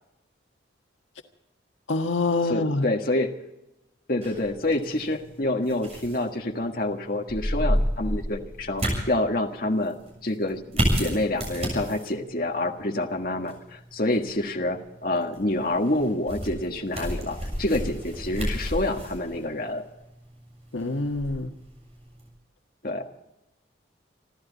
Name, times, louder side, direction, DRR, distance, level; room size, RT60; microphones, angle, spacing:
voice 1, 1.9-2.9 20.7-21.5, left 2 dB, 85° left, 5 dB, 1.6 m, -25 dB
voice 2, 2.5-3.3 4.1-9.9 10.2-19.8 22.8-23.1, left 1 dB, 50° left, 3 dB, 1.6 m, -27 dB
sound 1, 4.2-22.3, equal, 35° right, 7.2 m, -32 dB
27.0 x 13.0 x 4.1 m, 0.89 s
head